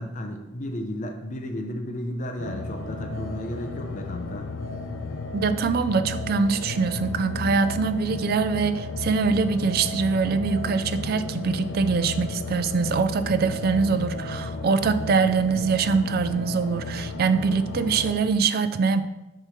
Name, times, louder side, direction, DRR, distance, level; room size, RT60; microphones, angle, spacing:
voice 1, 0.0-4.5, left 1 dB, 40° left, 4 dB, 0.6 m, -33 dB
sound 1, 2.4-18.1, left 3 dB, 80° left, 0.5 m, -33 dB
voice 2, 5.3-19.0, right 5 dB, 50° right, 11 dB, 0.3 m, -23 dB
6.5 x 3.1 x 5.8 m, 1.0 s
head